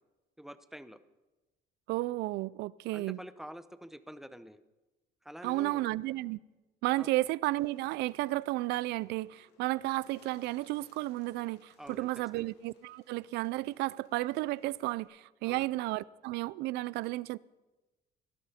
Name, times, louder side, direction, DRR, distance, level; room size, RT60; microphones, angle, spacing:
voice 1, 0.4-1.0 2.9-4.6 5.2-5.9 7.0-7.1 11.8-12.5 15.4-15.7, equal, ahead, 0.7 m, -47 dB
voice 2, 1.9-3.2 5.4-6.4 6.8-17.4, right 18 dB, 85° right, 0.4 m, -33 dB
Bird, 7.5-15.1, left 4 dB, 85° left, 2.9 m, -67 dB
18.0 x 12.0 x 4.3 m
cardioid pair, 110°, 17 cm